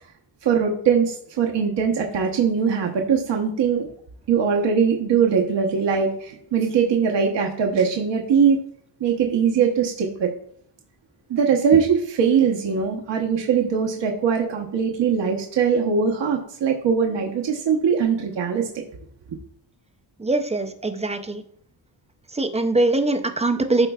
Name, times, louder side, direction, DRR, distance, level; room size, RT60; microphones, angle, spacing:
voice 1, 0.4-3.9 4.3-8.6 9.0-10.3 11.3-18.7, right 6 dB, 70° right, 1 dB, 0.9 m, -21 dB
voice 2, 20.2-21.4 22.3-23.9, right 2 dB, 15° right, 7 dB, 0.4 m, -22 dB
13.0 x 4.4 x 2.3 m, 0.63 s
wide cardioid pair, 160°, 45 cm